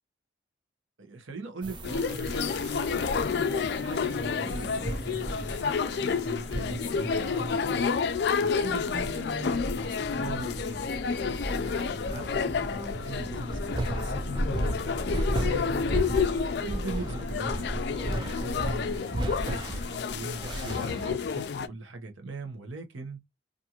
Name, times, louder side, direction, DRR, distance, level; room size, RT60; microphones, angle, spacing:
voice 1, 1.0-2.6 2.9-3.5 3.8-5.6 6.0-7.9 8.4-10.9 11.6-14.7 15.3-16.0 16.3-19.8 20.1-23.2, right 3 dB, 80° right, 0.8 m, -40 dB
sound 1, 1.6-21.1, right 1 dB, 25° right, 0.4 m, -35 dB
sound 2, 1.8-21.7, left 5 dB, 55° left, 0.3 m, -30 dB
2.5 x 2.4 x 2.8 m
head